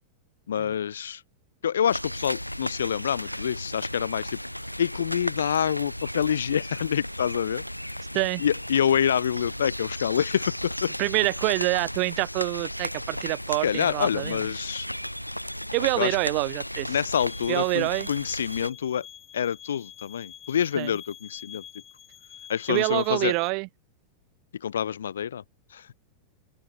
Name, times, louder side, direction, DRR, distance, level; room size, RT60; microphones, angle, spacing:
voice 1, 0.5-1.2 1.6-4.4 4.8-7.6 8.4-10.9 13.6-14.9 16.0-16.2 16.9-19.1 19.3-21.6 22.5-23.3 24.6-25.4 25.7-25.9, left 8 dB, 65° left, 0.6 m, -27 dB
sound 1, 1.9-18.7, equal, 90° left, 1.4 m, -35 dB
voice 2, 11.0-14.4 15.7-16.9 17.5-18.1 20.8-20.9 22.7-23.7, right 31 dB, 45° right, 0.4 m, -26 dB
sound 2, 17.1-23.5, left 10 dB, 25° left, 2.0 m, -47 dB
open air
figure-of-eight pair, 90°, 0 cm